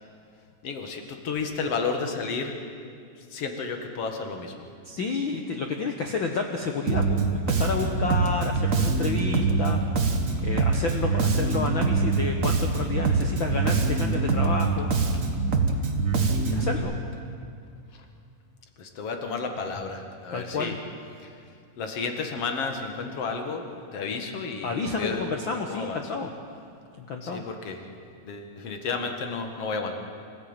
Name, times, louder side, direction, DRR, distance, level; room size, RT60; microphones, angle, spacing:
voice 1, 0.6-2.6 3.2-4.7 10.3-10.5 17.9-18.1 18.8-20.8 21.2-21.3 21.8-26.0 27.2-27.8 28.2-29.9, left 4 dB, 50° left, 5 dB, 2.4 m, -32 dB
voice 2, 4.8-9.8 10.4-14.9 16.3-16.9 20.3-20.7 24.6-26.3 26.9-27.4, left 4 dB, 75° left, 3 dB, 1.1 m, -30 dB
Bass guitar, 6.9-16.8, right 4 dB, 85° right, 0.7 m, -24 dB
25.0 x 15.0 x 9.0 m, 2.3 s
omnidirectional pair, 3.9 m